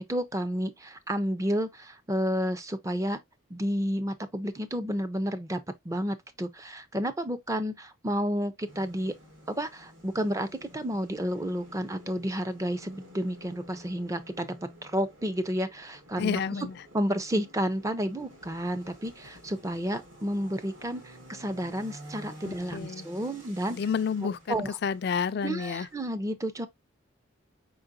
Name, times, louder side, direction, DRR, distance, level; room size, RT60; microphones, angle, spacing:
voice 1, 0.0-3.2 3.5-9.1 9.5-14.5 14.8-16.7 16.9-23.8 24.2-24.8 25.4-26.7, equal, 15° right, 0.4 m, -31 dB
sound 1, 8.6-26.0, equal, 70° right, 2.0 m, -51 dB
voice 2, 16.2-16.8 22.4-23.1 23.7-25.9, left 6 dB, 50° left, 0.3 m, -30 dB
5.2 x 3.8 x 2.4 m
head